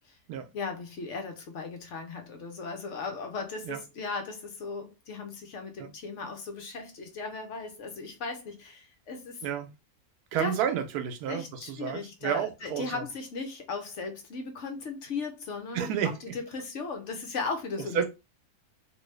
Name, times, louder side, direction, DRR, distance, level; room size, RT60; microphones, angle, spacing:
voice 1, 0.5-9.4 10.4-10.5 11.3-18.0, left 4 dB, 60° left, 0.9 m, -37 dB
voice 2, 10.3-13.0 15.7-16.3 17.9-18.0, right 8 dB, 85° right, 1.1 m, -31 dB
3.0 x 2.6 x 3.2 m
omnidirectional pair, 1.6 m